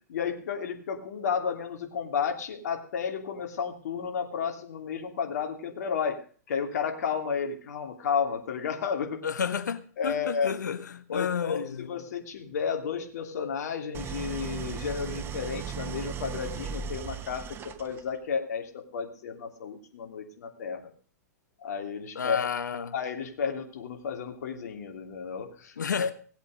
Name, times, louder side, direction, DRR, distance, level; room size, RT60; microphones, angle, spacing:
voice 1, 0.1-9.2 10.0-10.5 11.1-20.9 21.6-22.5 22.9-26.1, left 6 dB, 70° left, 3.0 m, -32 dB
voice 2, 9.2-11.9 22.1-22.9 25.8-26.1, left 7 dB, 90° left, 1.4 m, -31 dB
Idling, 13.9-18.2, right 8 dB, 25° right, 1.1 m, -37 dB
18.0 x 8.2 x 6.6 m
hypercardioid pair, 125°, 9 cm